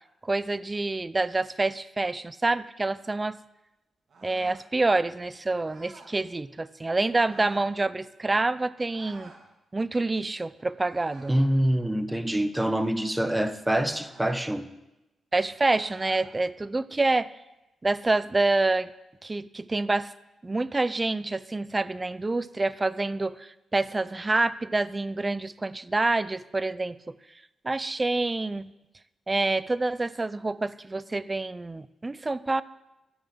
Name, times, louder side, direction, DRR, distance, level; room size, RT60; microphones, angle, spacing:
voice 1, 0.2-3.4 4.2-9.3 9.7-11.4 15.3-17.3 17.8-18.9 19.2-20.1 20.4-27.2 27.6-28.7 29.3-32.6, right 2 dB, 25° right, 0.5 m, -27 dB
sound 1, 4.1-4.7 5.6-6.2 7.2-7.7 8.9-9.4 10.8-11.5 13.8-14.4 15.7-16.3, right 3 dB, 55° right, 2.7 m, -50 dB
voice 2, 11.3-14.7, right 1 dB, 10° right, 1.0 m, -25 dB
13.0 x 7.1 x 7.9 m
cardioid pair, 70°, 0 cm